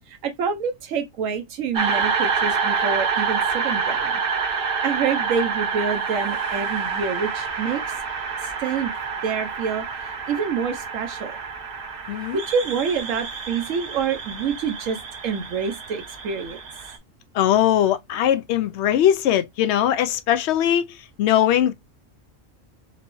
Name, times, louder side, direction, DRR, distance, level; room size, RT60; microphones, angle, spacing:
voice 1, 0.1-4.2 4.8-7.8 8.4-8.9 9.2-11.4 12.3-16.6, right 6 dB, 85° right, 1.1 m, -27 dB
sound 1, 1.7-17.0, right 5 dB, 50° right, 1.0 m, -27 dB
voice 2, 12.1-12.4 17.3-21.7, left 11 dB, 65° left, 0.8 m, -20 dB
4.5 x 2.9 x 3.0 m
omnidirectional pair, 1.3 m